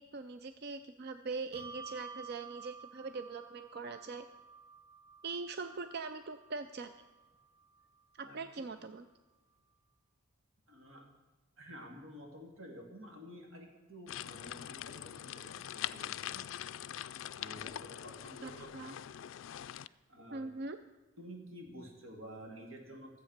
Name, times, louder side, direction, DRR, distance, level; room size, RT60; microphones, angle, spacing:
voice 1, 0.0-4.2 5.2-6.9 8.2-9.1 18.4-18.9 20.3-20.8, right 4 dB, 50° right, 9 dB, 0.4 m, -42 dB
Bell, 1.5-8.4, right 4 dB, 35° right, 1.4 m, -53 dB
voice 2, 8.2-8.7 10.7-11.1 11.6-16.4 17.4-18.9 19.9-20.4 21.2-23.2, equal, 85° right, 1 dB, 2.7 m, -51 dB
sound 1, 14.1-19.9, left 11 dB, 70° left, 0.3 m, -43 dB
14.5 x 8.0 x 6.6 m, 1.2 s
head